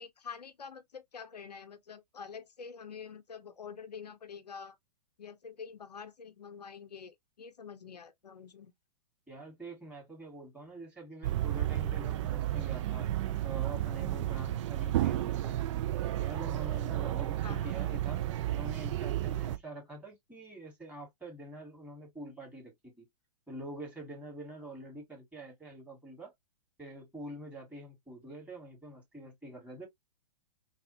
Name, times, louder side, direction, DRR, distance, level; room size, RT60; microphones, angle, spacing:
voice 1, 0.0-4.8 5.2-8.7 17.4-17.7, left 6 dB, 90° left, 0.7 m, -46 dB
voice 2, 9.3-13.1 13.4-15.9 16.2-23.1 23.5-26.3 26.8-29.9, right 1 dB, 5° right, 2.2 m, -46 dB
sound 1, 11.2-19.6, right 13 dB, 50° right, 0.4 m, -32 dB
3.4 x 2.4 x 2.8 m
hypercardioid pair, 125°, 20 cm